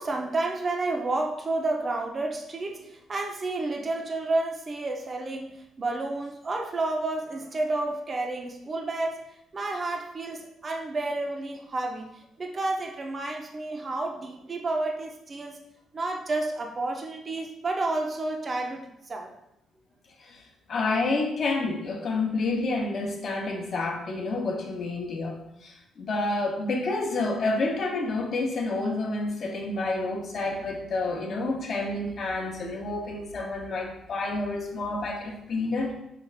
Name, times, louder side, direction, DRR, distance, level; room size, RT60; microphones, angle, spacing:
voice 1, 0.0-9.2 9.5-12.1 12.4-15.6 15.9-19.3, right 2 dB, 30° right, 3 dB, 0.5 m, -30 dB
voice 2, 20.7-35.9, left 3 dB, 45° left, 1 dB, 0.7 m, -29 dB
4.8 x 2.4 x 3.2 m, 0.82 s
cardioid pair, 125°, 0 cm